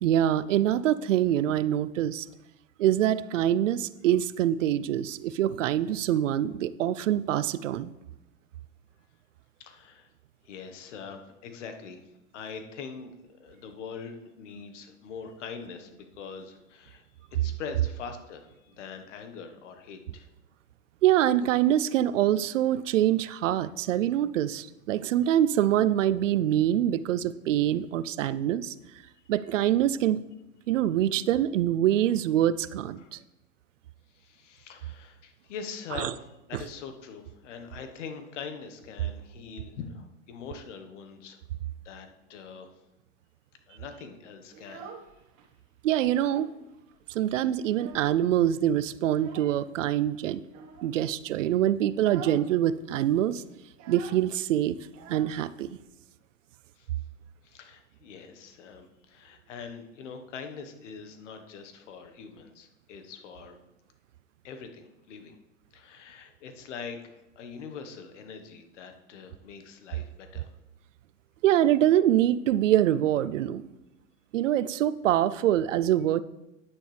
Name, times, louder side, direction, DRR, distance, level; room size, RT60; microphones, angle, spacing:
voice 1, 0.0-2.3 2.8-7.9 21.0-28.7 29.3-30.2 30.7-33.2 36.0-36.1 45.8-46.5 47.1-50.4 50.8-53.4 53.9-54.8 55.1-55.7 71.4-73.7 74.3-76.2, right 11 dB, 80° right, 16 dB, 0.6 m, -25 dB
voice 2, 9.6-10.1 10.4-12.0 12.3-17.1 17.3-20.3 33.0-33.1 34.1-41.4 41.8-42.7 43.7-44.9 56.8-56.9 57.4-63.6 64.4-65.4 65.7-70.5, left 5 dB, 70° left, 6 dB, 1.5 m, -43 dB
Child speech kid speaking, 44.4-45.5 45.8-46.6 46.9-47.0 47.3-48.4 49.1-49.6 50.4-50.9 51.4-51.6 51.9-52.5 52.7-52.8 53.1-55.9, right 6 dB, 45° right, 1.4 m, -47 dB
10.0 x 9.3 x 3.4 m, 0.93 s
hypercardioid pair, 115°, 37 cm